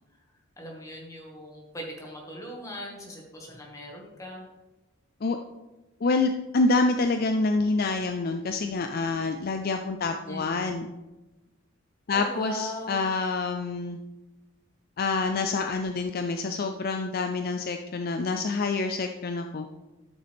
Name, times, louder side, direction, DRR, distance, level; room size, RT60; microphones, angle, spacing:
voice 1, 0.6-4.4 10.2-10.8 12.1-13.0, equal, 15° left, -1 dB, 1.8 m, -39 dB
voice 2, 6.0-10.9 12.1-14.0 15.0-19.7, left 3 dB, 45° left, 6 dB, 0.4 m, -27 dB
13.0 x 6.5 x 3.5 m, 1.1 s
head